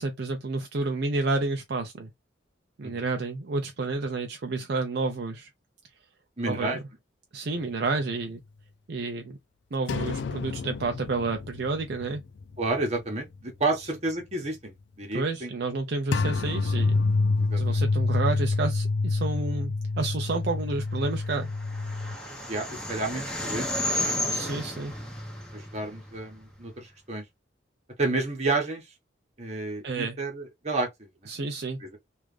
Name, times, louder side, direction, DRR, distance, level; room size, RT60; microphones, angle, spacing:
voice 1, 0.0-2.1 2.8-5.5 6.5-6.8 7.3-8.4 8.9-9.4 9.7-12.2 13.8-13.9 15.1-17.0 17.5-21.5 24.3-24.9 29.8-30.2 31.3-31.8, right 3 dB, 55° right, 0.5 m, -30 dB
voice 2, 6.4-6.8 12.6-15.5 17.4-17.8 22.5-23.7 23.9-24.6 25.5-27.2 28.0-28.8 29.4-31.3 31.8-32.0, right 2 dB, 35° right, 1.2 m, -31 dB
sound 1, 9.9-13.0 13.3-13.5 16.1-22.2, left 3 dB, 65° left, 0.3 m, -27 dB
sound 2, 21.1-26.6, left 1 dB, 5° left, 1.0 m, -33 dB
3.2 x 2.5 x 3.3 m
head